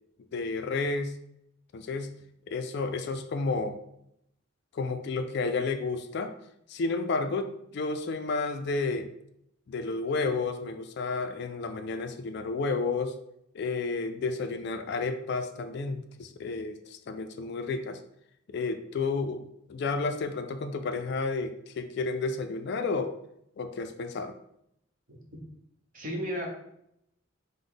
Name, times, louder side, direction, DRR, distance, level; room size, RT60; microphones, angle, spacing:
voice 1, 0.3-1.1 1.7-2.1 2.5-3.8 4.7-6.3 6.7-9.1 9.7-13.1 13.5-18.0 18.5-23.1 23.6-24.4, left 3 dB, 55° left, 8 dB, 0.3 m, -31 dB
voice 2, 25.1-25.4 25.9-26.5, equal, 40° right, 0 dB, 0.9 m, -34 dB
5.0 x 2.0 x 3.8 m, 0.77 s
head